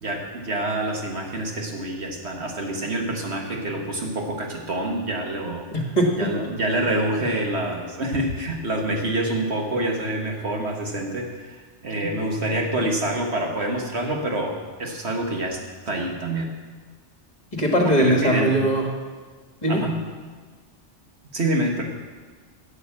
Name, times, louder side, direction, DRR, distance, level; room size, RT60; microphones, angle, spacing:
voice 1, 0.0-5.7 6.1-15.6 15.9-16.5 17.9-18.6 19.7-20.0 21.3-21.8, right 1 dB, 65° right, 1 dB, 1.8 m, -26 dB
voice 2, 5.7-6.3 17.5-18.9 19.6-19.9, right 1 dB, 35° left, 1 dB, 1.7 m, -21 dB
11.0 x 8.0 x 7.3 m, 1.4 s
omnidirectional pair, 1.2 m